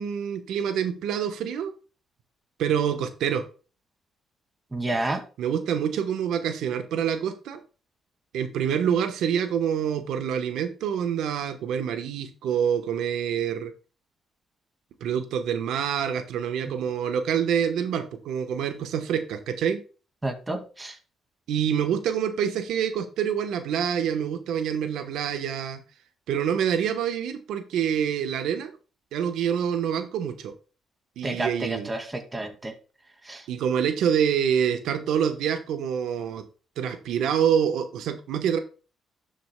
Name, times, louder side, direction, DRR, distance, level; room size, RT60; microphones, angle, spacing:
voice 1, 0.0-1.7 2.6-3.5 5.4-7.6 8.3-13.7 15.0-19.8 21.5-25.8 26.3-28.7 29.1-30.5 31.2-31.9 33.5-36.4 36.8-38.6, right 8 dB, 80° right, 8 dB, 1.1 m, -26 dB
voice 2, 4.7-5.2 20.2-21.0 31.2-32.7 33.2-33.5, right 2 dB, 20° right, 5 dB, 2.2 m, -30 dB
12.0 x 7.8 x 2.2 m, 0.35 s
cardioid pair, 90°, 0 cm